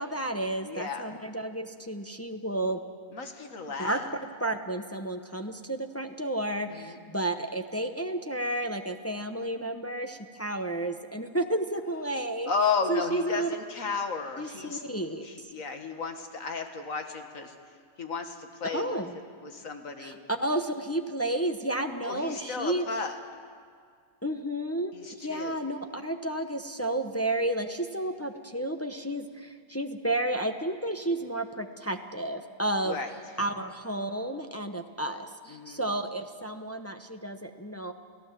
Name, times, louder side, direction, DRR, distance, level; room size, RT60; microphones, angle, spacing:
voice 1, 0.0-2.8 3.8-4.0 4.4-12.5 12.9-13.5 14.4-15.5 18.7-19.2 20.0-22.8 24.2-33.0 33.4-37.9, right 1 dB, 15° left, 6 dB, 0.7 m, -32 dB
voice 2, 0.6-1.1 3.1-4.1 6.7-7.0 12.5-14.8 15.2-17.5 18.0-19.0 19.4-20.2 22.0-23.2 24.9-25.6 32.8-33.1 35.5-35.8, left 5 dB, 65° left, 5 dB, 2.0 m, -33 dB
30.0 x 16.0 x 7.5 m, 2.1 s
omnidirectional pair, 1.5 m